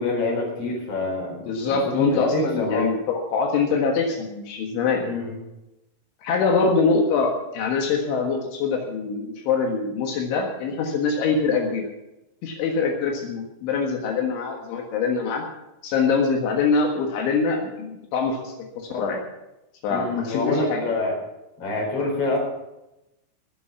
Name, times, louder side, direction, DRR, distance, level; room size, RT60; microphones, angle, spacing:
voice 1, 0.0-1.4 1.7-2.9 5.0-5.4 19.9-21.1 21.6-22.4, left 2 dB, 30° left, 0 dB, 4.6 m, -26 dB
voice 2, 1.4-5.0 6.2-11.9 12.4-15.4 15.8-19.2 19.8-20.8, left 4 dB, 75° left, 2 dB, 3.9 m, -24 dB
20.5 x 7.4 x 7.1 m, 0.93 s
omnidirectional pair, 5.6 m